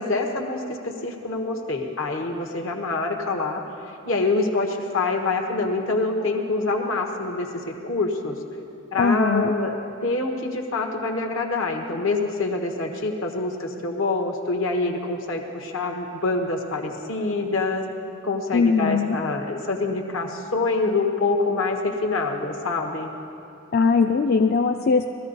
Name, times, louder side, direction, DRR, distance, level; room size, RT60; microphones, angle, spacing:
voice 1, 0.0-3.6 4.0-7.5 7.8-8.4 8.9-9.8 10.0-17.9 18.2-23.1, left 3 dB, 70° left, 2 dB, 1.4 m, -26 dB
voice 2, 9.0-9.5 18.5-19.2 23.7-25.1, left 5 dB, 45° left, 4 dB, 0.4 m, -20 dB
18.5 x 14.0 x 4.0 m, 2.7 s
head